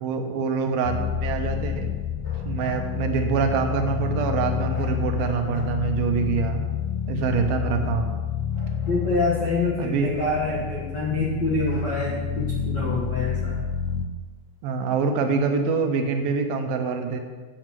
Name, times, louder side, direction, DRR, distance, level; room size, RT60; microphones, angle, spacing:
voice 1, 0.0-1.9 2.5-6.7 7.1-8.2 9.8-10.1 14.6-17.2, right 5 dB, 80° right, 5 dB, 2.8 m, -25 dB
sound 1, 0.8-14.1, left 8 dB, 75° left, 2.3 m, -29 dB
Bark, 2.2-2.8 3.8-4.1 4.7-6.1 6.9-8.0 8.5-9.6 10.1-11.1 11.6-12.3, equal, 30° left, 2.3 m, -48 dB
voice 2, 8.9-13.6, left 3 dB, 60° left, -4 dB, 1.1 m, -26 dB
8.0 x 7.7 x 7.4 m, 1.4 s
omnidirectional pair, 4.2 m